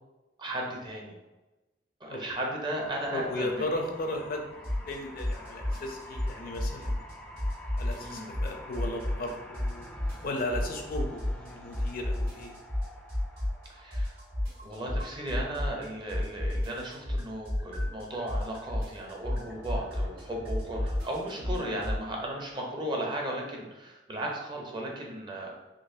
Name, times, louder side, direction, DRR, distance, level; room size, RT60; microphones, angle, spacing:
voice 1, 0.4-1.2 2.0-4.0 7.9-8.3 13.7-14.1 14.6-25.5, right 1 dB, 25° right, -1 dB, 0.7 m, -36 dB
sound 1, 2.8-15.1 19.1-21.0, left 1 dB, 5° left, 0.4 m, -48 dB
voice 2, 3.1-4.5 4.9-7.0 7.6-9.8 10.2-12.6 21.5-21.7, left 1 dB, 55° left, 3 dB, 0.5 m, -35 dB
sound 2, 4.6-4.9 5.2-7.1 7.4-9.3 9.5-11.5 11.7-15.8 16.1-22.0, left 1 dB, 60° right, 1.3 m, -31 dB
3.9 x 3.0 x 2.7 m, 1.1 s
head